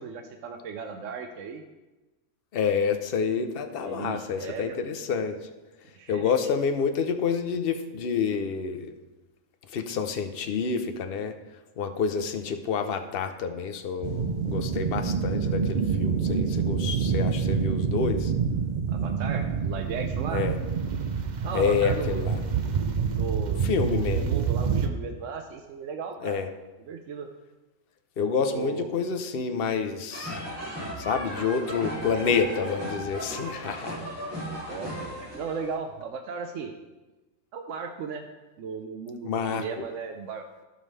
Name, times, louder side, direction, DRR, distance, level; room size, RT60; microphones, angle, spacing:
voice 1, 0.0-1.6 3.8-4.8 5.9-6.4 18.9-20.4 21.4-22.2 23.1-26.4 26.8-27.3 28.5-28.9 34.7-36.7 37.5-38.3 38.6-40.5, right 5 dB, 65° right, 5 dB, 1.0 m, -36 dB
voice 2, 2.5-5.4 6.1-8.9 9.7-11.3 11.8-18.3 20.3-20.6 21.5-22.4 23.6-24.3 26.2-26.5 28.2-30.4 31.0-34.0 39.2-39.8, left 6 dB, 50° left, 7 dB, 0.8 m, -28 dB
sound 1, 14.0-24.9, right 6 dB, 50° right, 0.5 m, -27 dB
sound 2, 30.1-35.7, equal, 10° right, 2.7 m, -36 dB
16.0 x 5.4 x 3.3 m, 1.1 s
omnidirectional pair, 1.5 m